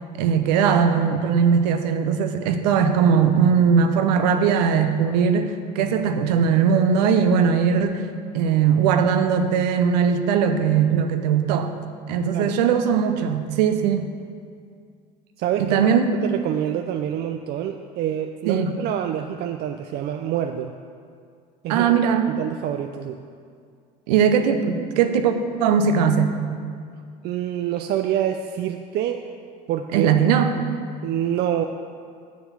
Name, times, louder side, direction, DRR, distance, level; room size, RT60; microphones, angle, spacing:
voice 1, 0.2-8.0 8.3-11.7 12.1-14.1 15.6-16.2 18.5-18.7 21.7-22.3 24.1-25.3 25.6-26.4 29.9-30.5, right 7 dB, 80° right, 8 dB, 0.8 m, -19 dB
voice 2, 15.4-15.9 16.2-20.7 21.6-22.0 22.4-23.2 27.2-29.2 29.7-30.1 31.0-31.6, right 10 dB, 50° right, 6 dB, 0.5 m, -26 dB
7.4 x 7.1 x 7.3 m, 2.2 s
hypercardioid pair, 80°, 21 cm